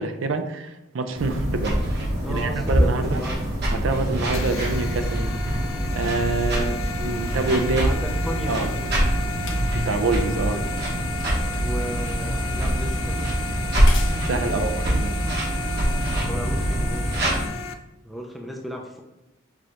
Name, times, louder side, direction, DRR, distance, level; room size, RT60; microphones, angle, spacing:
voice 1, 0.0-1.8 2.3-3.2 3.8-5.6 5.9-7.9 8.5-8.7 9.9-10.6 14.2-15.2, right 3 dB, 70° right, 7 dB, 0.4 m, -26 dB
sound 1, 1.2-17.5, equal, 50° right, 1.1 m, -24 dB
voice 2, 2.2-3.4 7.7-8.9 10.5-10.9 11.6-13.3 14.3-15.1 16.2-17.2 18.0-19.0, equal, ahead, 0 dB, 0.4 m, -35 dB
sound 2, 4.3-17.7, left 4 dB, 80° left, 0.4 m, -35 dB
sound 3, 9.3-16.1 17.0-17.1, left 5 dB, 65° left, 0.8 m, -44 dB
6.0 x 2.8 x 2.5 m, 0.95 s
head